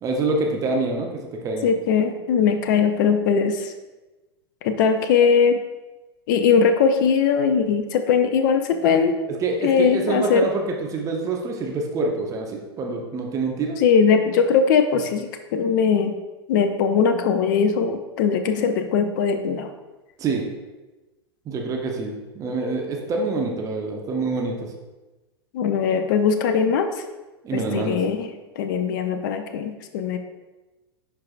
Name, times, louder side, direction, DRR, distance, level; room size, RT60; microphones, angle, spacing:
voice 1, 0.0-1.7 9.4-10.6 10.9-13.8 20.2-20.4 21.5-24.7 27.4-28.0, right 3 dB, 25° right, 1 dB, 0.9 m, -26 dB
voice 2, 1.6-3.7 4.6-5.6 6.3-9.2 9.6-10.5 13.8-16.2 16.5-19.7 25.5-26.9 27.5-30.2, left 6 dB, 50° left, 7 dB, 0.6 m, -20 dB
10.5 x 4.7 x 2.5 m, 1.1 s
figure-of-eight pair, 90°, 13 cm